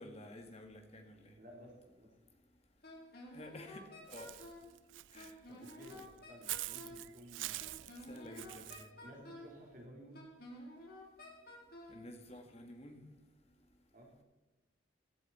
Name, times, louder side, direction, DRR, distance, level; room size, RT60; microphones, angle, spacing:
voice 1, 0.0-1.3 3.3-4.3 5.1-5.3 8.1-8.9 11.9-13.0, left 1 dB, 35° left, 5 dB, 1.9 m, -51 dB
voice 2, 1.4-2.1 5.5-8.0 9.0-10.3 13.9-14.1, equal, 45° right, -1 dB, 4.2 m, -55 dB
Wind instrument woodwind instrument, 2.8-4.7 5.2-7.1 7.6-9.6 10.1-12.0, left 1 dB, 55° left, 3.7 m, -52 dB
Walk footsteps / Bird, 4.1-8.9, right 17 dB, 85° right, 0.4 m, -45 dB
15.5 x 13.0 x 4.3 m, 1.2 s
head